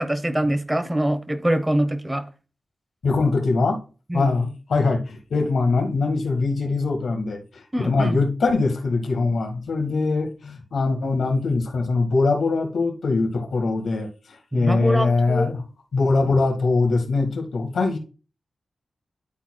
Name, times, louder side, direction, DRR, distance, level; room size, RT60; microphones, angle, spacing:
voice 1, 0.0-2.3 4.1-4.3 7.7-8.2 14.5-15.5, right 1 dB, 15° right, 1.2 m, -24 dB
voice 2, 3.0-3.8 4.1-14.1 14.5-15.6 15.9-18.0, left 3 dB, 85° left, 1.5 m, -22 dB
11.5 x 4.2 x 2.3 m
cardioid pair, 50°, 0 cm